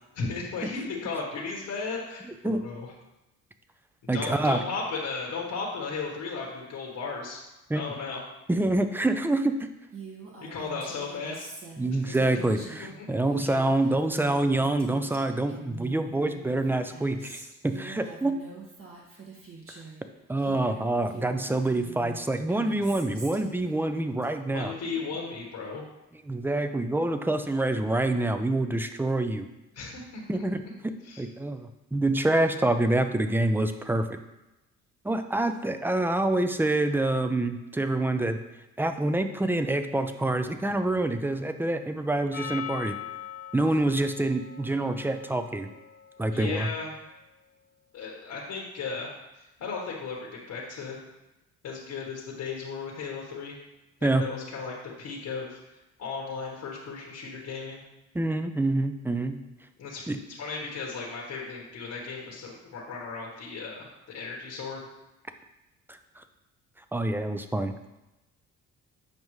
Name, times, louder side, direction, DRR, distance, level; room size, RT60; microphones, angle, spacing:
voice 1, 0.1-2.9 4.1-7.4 7.7-8.2 10.4-11.5 12.0-12.2 12.5-13.1 13.3-13.5 24.5-25.8 29.7-30.4 31.0-31.2 46.3-46.9 47.9-49.1 49.6-51.0 51.6-53.6 54.0-55.6 56.0-57.8 59.8-64.8, left 4 dB, 70° left, -2 dB, 1.4 m, -35 dB
voice 2, 4.1-4.6 7.7-7.8 8.5-9.5 11.8-18.4 20.3-24.7 26.3-29.5 30.3-30.9 31.2-34.2 35.0-38.4 38.8-42.9 43.5-45.7 46.2-46.7 54.0-54.2 58.1-59.4 60.1-60.2 65.9-66.0 66.9-67.7, right 2 dB, 5° right, 8 dB, 0.5 m, -26 dB
Female speech woman speaking, 9.9-20.0 20.4-24.2, right 4 dB, 45° right, 1.7 m, -45 dB
Percussion, 42.3-46.9, left 9 dB, 30° left, 1.0 m, -42 dB
7.5 x 5.2 x 3.1 m, 0.99 s
cardioid pair, 90°, 30 cm